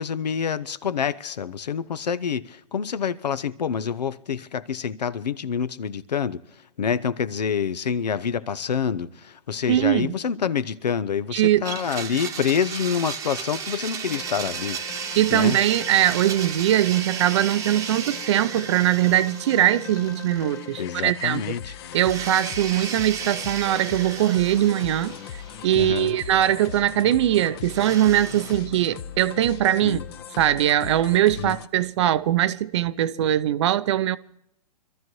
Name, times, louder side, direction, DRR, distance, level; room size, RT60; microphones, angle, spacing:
voice 1, 0.0-6.4 6.8-14.8 15.3-15.6 20.8-21.7 25.7-26.2 29.8-30.0 31.4-31.6, left 7 dB, 80° left, 0.8 m, -27 dB
voice 2, 9.7-10.1 11.3-11.6 15.2-21.6 21.9-30.0 30.4-34.2, right 12 dB, 45° right, 0.6 m, -21 dB
Domestic sounds home sounds, 11.6-20.8 21.1-21.2 21.9-25.9 27.7-28.6, right 7 dB, 15° right, 1.0 m, -34 dB
sound 1, 14.1-31.7, left 9 dB, 40° left, 0.8 m, -40 dB
25.5 x 13.5 x 3.1 m
hypercardioid pair, 140°, 21 cm